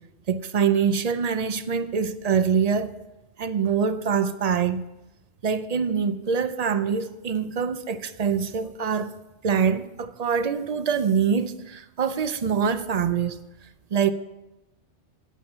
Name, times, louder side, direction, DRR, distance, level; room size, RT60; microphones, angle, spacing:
voice 1, 0.3-3.0 3.4-4.8 5.4-9.1 9.4-13.4 13.9-14.1, right 6 dB, 50° right, 0.5 m, -24 dB
11.5 x 8.4 x 5.4 m
omnidirectional pair, 1.2 m